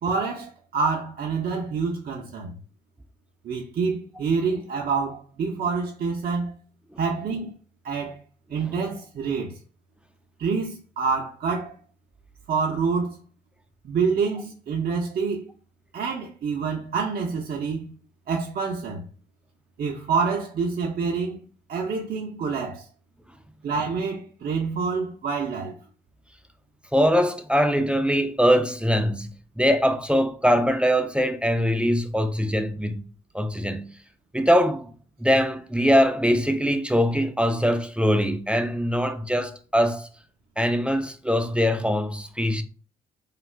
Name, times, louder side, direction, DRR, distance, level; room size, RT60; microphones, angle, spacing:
voice 1, 0.0-2.5 3.4-6.6 7.0-7.5 7.8-8.2 8.5-9.5 10.4-11.7 12.5-13.2 13.8-15.5 15.9-17.9 18.3-19.0 19.8-21.4 21.7-22.9 23.6-25.8, right 5 dB, 50° right, 0.6 m, -27 dB
voice 2, 26.9-33.1 33.3-33.9 34.3-34.9 35.2-40.1 40.6-42.6, equal, 5° right, 0.4 m, -22 dB
2.4 x 2.3 x 3.2 m
hypercardioid pair, 45°, 20 cm